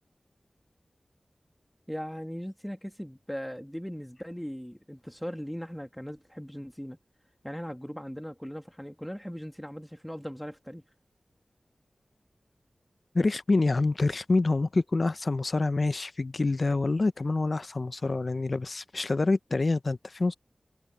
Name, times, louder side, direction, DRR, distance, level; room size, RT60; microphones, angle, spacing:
voice 1, 1.9-7.0 7.4-10.8, equal, 5° left, 2.6 m, -39 dB
voice 2, 13.1-20.3, left 3 dB, 60° left, 0.8 m, -26 dB
cardioid pair, 45°, 0 cm